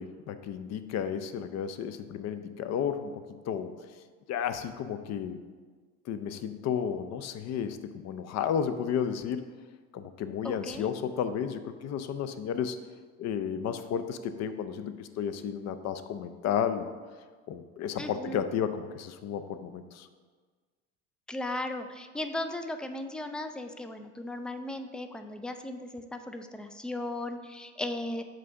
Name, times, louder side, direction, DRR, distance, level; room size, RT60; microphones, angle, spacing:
voice 1, 0.0-3.7 4.3-5.4 6.1-9.4 9.9-12.8 13.2-16.9 17.5-20.1, left 8 dB, 45° left, 10 dB, 0.6 m, -32 dB
voice 2, 10.4-10.9 18.0-18.4 21.3-28.2, left 1 dB, 5° left, 7 dB, 0.3 m, -36 dB
7.6 x 2.6 x 5.7 m, 1.5 s
hypercardioid pair, 80°, 36 cm